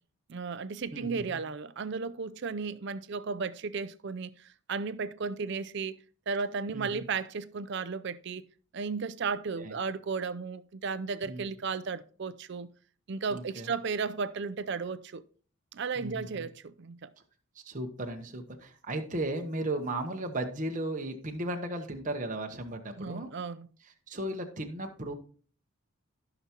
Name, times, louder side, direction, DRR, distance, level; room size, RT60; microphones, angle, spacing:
voice 1, 0.3-6.0 6.3-8.5 8.7-12.7 13.1-15.2 15.7-17.1 23.0-23.7, right 5 dB, 50° right, 0.5 m, -34 dB
voice 2, 0.9-1.4 6.7-7.0 9.6-9.7 11.3-11.4 13.3-13.7 16.0-16.5 17.5-23.3 24.1-25.1, right 1 dB, 35° right, 0.9 m, -35 dB
14.5 x 5.9 x 2.9 m
head